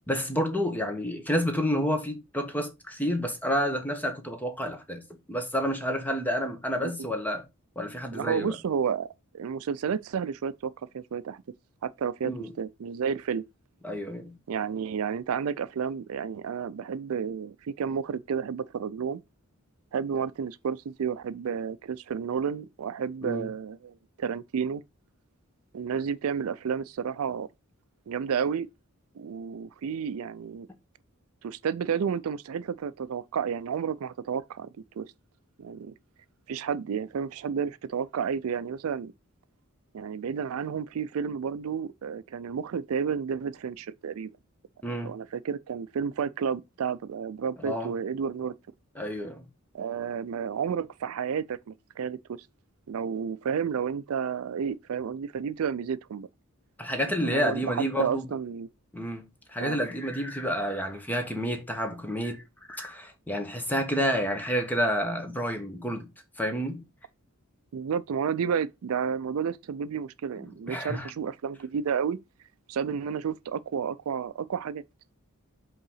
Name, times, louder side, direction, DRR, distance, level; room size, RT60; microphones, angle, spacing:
voice 1, 0.1-5.0 5.3-7.4 7.8-8.5 12.2-12.5 13.8-14.3 23.2-23.5 44.8-45.1 47.6-47.9 49.0-49.5 56.8-58.2 58.9-62.4 62.7-66.1 66.4-66.8 70.7-71.1, equal, 10° left, 1.2 m, -29 dB
voice 2, 8.1-11.4 11.8-13.4 14.5-19.2 19.9-24.8 25.7-27.5 28.1-28.7 29.2-30.7 31.4-35.1 35.6-35.9 36.5-39.1 39.9-44.3 44.9-48.5 49.7-52.5 52.9-56.3 57.1-58.7 59.6-59.8 67.7-72.2 72.7-74.8, right 7 dB, 80° right, 0.4 m, -31 dB
5.4 x 3.8 x 5.5 m
head